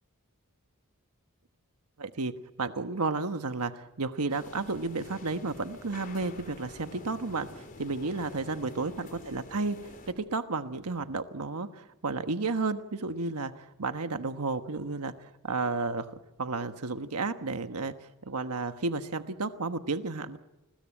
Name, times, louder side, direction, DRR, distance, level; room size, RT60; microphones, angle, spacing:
voice 1, 2.0-16.1 16.4-20.4, right 3 dB, 85° right, 8 dB, 1.2 m, -32 dB
sound 1, 4.3-10.1, left 2 dB, 40° left, 3.8 m, -47 dB
29.5 x 21.0 x 8.8 m, 1.1 s
head